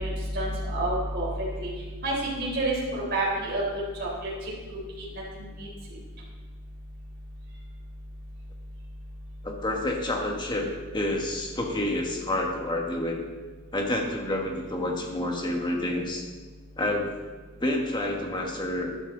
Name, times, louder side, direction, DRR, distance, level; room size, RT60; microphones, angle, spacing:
voice 1, 0.0-6.0, right 1 dB, 45° right, -5 dB, 4.1 m, -30 dB
voice 2, 9.4-13.2 13.7-16.3 16.8-17.1 17.6-18.9, left 1 dB, 20° left, 1 dB, 1.6 m, -29 dB
11.5 x 11.5 x 4.0 m, 1.4 s
head